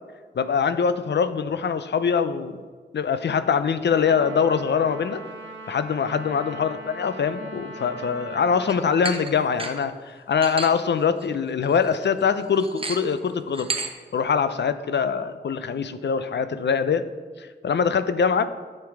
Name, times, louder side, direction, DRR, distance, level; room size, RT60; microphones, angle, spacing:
voice 1, 0.4-2.6 2.9-5.2 5.7-13.7 14.1-17.0 17.4-18.5, left 6 dB, 65° left, 12 dB, 0.5 m, -23 dB
Trumpet, 3.9-8.9, right 1 dB, 80° right, 1.1 m, -40 dB
sound 1, 8.7-8.8 9.0-9.3 9.6-9.8 10.4-10.7 11.2-11.3 11.6-11.9 12.6-13.1 13.5-13.9, right 3 dB, 30° right, 1.0 m, -31 dB
9.4 x 6.8 x 4.8 m, 1.5 s
cardioid pair, 60°, 19 cm